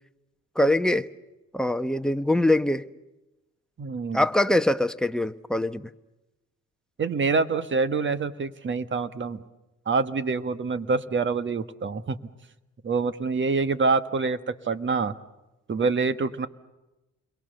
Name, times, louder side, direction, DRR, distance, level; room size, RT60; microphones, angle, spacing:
voice 1, 0.6-1.1 1.5-2.8 4.1-5.9, left 1 dB, ahead, 9 dB, 1.1 m, -23 dB
voice 2, 3.8-4.6 7.0-9.4 9.8-12.2 12.8-15.1 15.7-16.5, right 4 dB, 40° right, 12 dB, 1.5 m, -26 dB
29.5 x 23.0 x 6.7 m, 1.0 s
cardioid pair, 90°, 30 cm